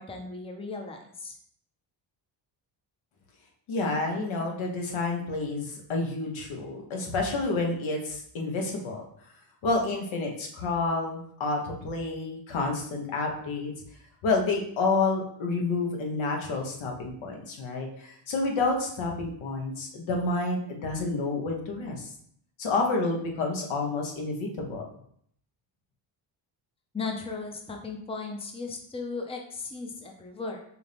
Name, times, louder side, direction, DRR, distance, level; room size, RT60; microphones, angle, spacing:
voice 1, 0.0-1.4 26.9-30.6, left 4 dB, 10° left, 2 dB, 0.7 m, -36 dB
voice 2, 3.7-9.1 9.6-13.7 14.2-22.1 22.6-24.9, left 3 dB, 75° left, 1 dB, 1.1 m, -29 dB
4.7 x 2.7 x 3.4 m, 0.65 s
cardioid pair, 75°, 48 cm